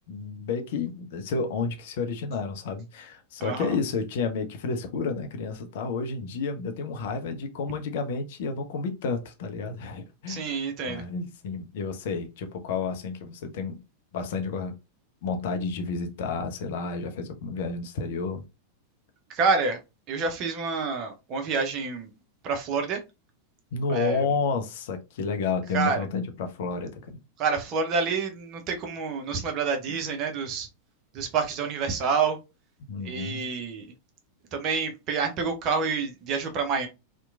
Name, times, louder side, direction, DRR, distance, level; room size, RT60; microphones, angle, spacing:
voice 1, 0.1-10.6 10.9-13.8 14.1-14.7 15.2-18.4 23.7-27.2 29.9-30.0 32.9-33.5, left 4 dB, 55° left, 0.5 m, -31 dB
voice 2, 3.4-3.8 10.3-11.0 19.3-19.8 20.1-22.1 22.4-23.0 23.9-24.2 25.7-26.0 27.4-30.7 31.1-32.4 33.0-33.9 34.5-36.9, right 5 dB, 35° right, 0.6 m, -28 dB
2.8 x 2.1 x 2.3 m
figure-of-eight pair, 90°, 0 cm